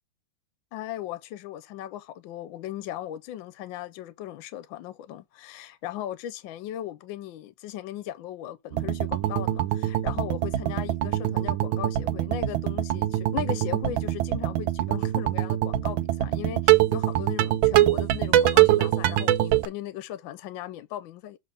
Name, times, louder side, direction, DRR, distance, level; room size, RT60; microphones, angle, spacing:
voice 1, 0.7-21.4, left 12 dB, 80° left, 1.3 m, -37 dB
sound 1, 8.7-19.7, right 14 dB, 80° right, 1.4 m, -24 dB
6.7 x 3.8 x 5.4 m
omnidirectional pair, 2.2 m